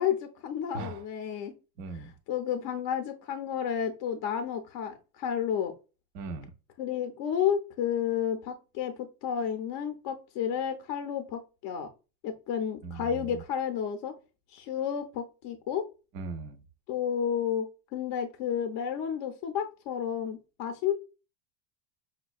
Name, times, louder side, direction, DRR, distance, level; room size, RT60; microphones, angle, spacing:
voice 1, 0.0-1.5 2.3-5.7 6.8-11.9 12.2-14.1 14.5-15.9 16.9-20.9, left 8 dB, 45° left, 0.6 m, -31 dB
voice 2, 0.7-1.0 1.8-2.1 6.1-6.5 12.8-13.4 16.1-16.6, right 3 dB, 35° right, 0.4 m, -39 dB
5.4 x 2.2 x 2.3 m
supercardioid pair, 125°, 50 cm